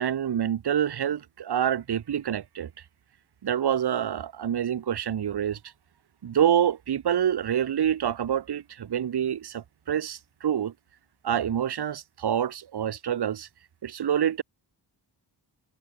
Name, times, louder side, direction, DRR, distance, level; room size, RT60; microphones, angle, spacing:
voice 1, 0.0-2.7 3.4-5.6 6.2-10.7 11.2-13.5 13.8-14.4, right 9 dB, 60° right, 1.2 m, -27 dB
wide cardioid pair, 160°, 46 cm